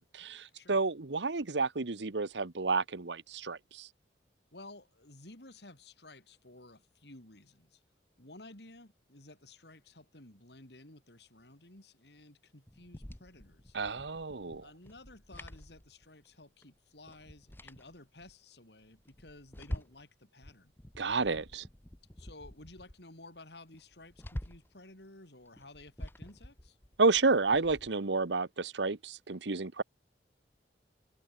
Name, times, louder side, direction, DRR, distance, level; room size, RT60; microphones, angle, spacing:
voice 1, 0.1-3.9 13.7-14.6 21.0-21.6 27.0-29.8, right 4 dB, 75° right, 1.1 m, -30 dB
voice 2, 4.5-7.8 8.2-13.8 14.6-20.7 22.2-26.8, left 2 dB, 65° left, 5.0 m, -54 dB
sound 1, 12.7-16.4 16.6-16.7 17.1-18.3 18.8-20.1 20.4-23.0 23.3-23.4 23.7-24.8 25.4-27.9, equal, 10° left, 1.0 m, -47 dB
head